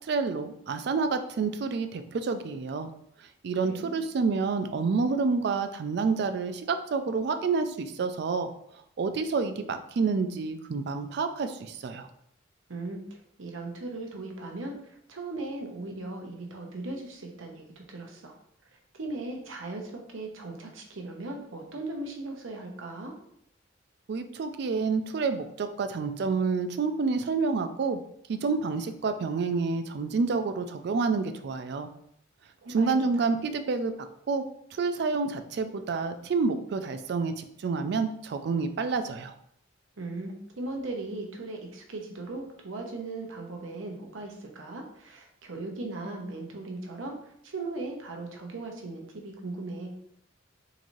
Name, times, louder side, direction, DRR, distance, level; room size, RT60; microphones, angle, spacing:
voice 1, 0.0-2.9 3.4-8.5 9.0-12.1 24.1-28.0 28.3-31.9 32.7-33.9 34.3-34.4 34.7-39.3, right 4 dB, 55° right, 8 dB, 0.3 m, -28 dB
voice 2, 3.6-4.0 12.7-13.0 13.4-18.3 18.9-23.1 32.6-33.3 40.0-47.2 47.4-49.9, right 2 dB, 80° right, 2 dB, 0.7 m, -38 dB
3.8 x 3.0 x 2.6 m, 0.71 s
head